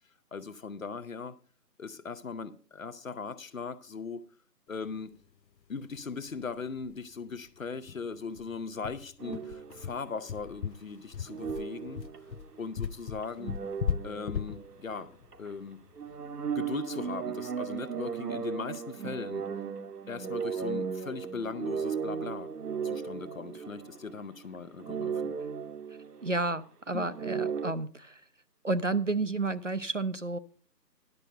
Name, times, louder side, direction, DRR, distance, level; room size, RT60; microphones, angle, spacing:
voice 1, 0.3-1.4 1.8-4.2 4.7-5.1 5.7-12.1 12.6-13.5 14.0-15.1 15.4-15.8 16.4-19.5 20.1-22.5 22.8-25.4 26.9-27.1, left 5 dB, 55° left, 13 dB, 0.8 m, -39 dB
sound 1, 6.0-6.1 6.4-6.5 6.8-6.9 7.3-7.4 7.9-16.3, left 7 dB, 85° left, 0.7 m, -37 dB
sound 2, 9.2-10.2 11.3-12.6 13.2-15.1 15.3-15.5 16.0-24.4 24.8-26.4 27.1-27.7, right 6 dB, 65° right, 0.9 m, -36 dB
voice 2, 26.2-28.2 28.6-30.4, right 3 dB, 50° right, 13 dB, 0.5 m, -31 dB
11.0 x 6.6 x 5.3 m, 0.42 s
figure-of-eight pair, 165°, 50 cm